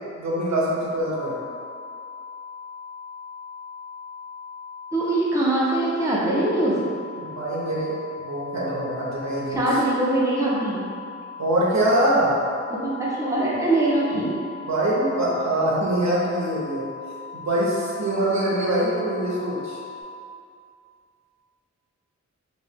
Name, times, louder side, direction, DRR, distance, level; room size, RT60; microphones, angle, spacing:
voice 1, 0.2-1.4 7.2-9.6 11.4-12.4 14.1-14.3 14.7-16.9 17.3-19.8, right 1 dB, 70° right, -6 dB, 0.8 m, -24 dB
sound 1, 1.0-20.0, left 6 dB, 85° left, 0.9 m, -40 dB
voice 2, 4.9-6.8 9.5-10.9 12.8-14.4, right 1 dB, 10° right, -6 dB, 0.6 m, -22 dB
2.9 x 2.8 x 3.5 m, 2.3 s
wide cardioid pair, 95°, 29 cm